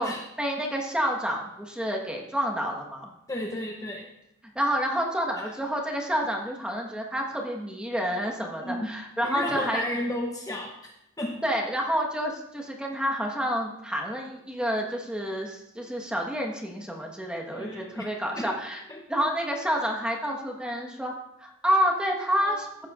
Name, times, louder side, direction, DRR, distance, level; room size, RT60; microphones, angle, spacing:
voice 1, 0.0-3.1 4.5-9.8 11.4-18.8 19.1-21.1 21.4-22.9, equal, 5° right, 0 dB, 1.3 m, -29 dB
voice 2, 3.3-4.1 8.6-8.9 9.2-10.8 11.2-11.4 17.5-18.5 18.9-19.0 22.4-22.6, left 1 dB, 15° left, 0 dB, 0.7 m, -33 dB
15.0 x 7.8 x 2.5 m, 0.85 s
head